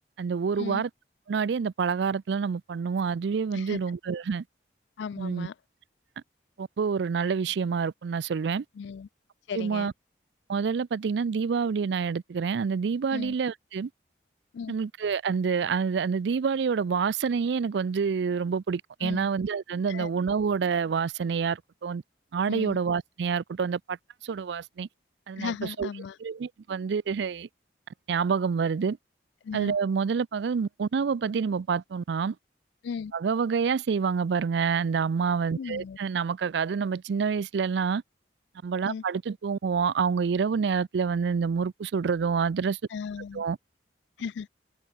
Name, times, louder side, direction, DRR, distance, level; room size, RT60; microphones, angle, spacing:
voice 1, 0.2-0.9 1.3-4.4 5.2-5.5 6.6-8.6 9.5-9.9 10.5-13.9 14.7-22.0 22.3-24.0 24.2-24.9 25.3-25.9 26.2-27.5 28.1-29.0 29.5-32.3 33.1-38.0 38.6-42.8 43.3-43.6, right 5 dB, 70° right, 0.4 m, -27 dB
voice 2, 5.0-5.5 8.8-9.1 9.5-9.9 13.1-13.4 14.5-14.7 19.0-19.3 19.9-20.1 22.5-22.8 25.4-26.2 29.4-29.8 32.8-33.1 35.6-36.0 38.9-39.0 42.9-43.4 44.2-44.5, left 6 dB, 75° left, 0.3 m, -36 dB
head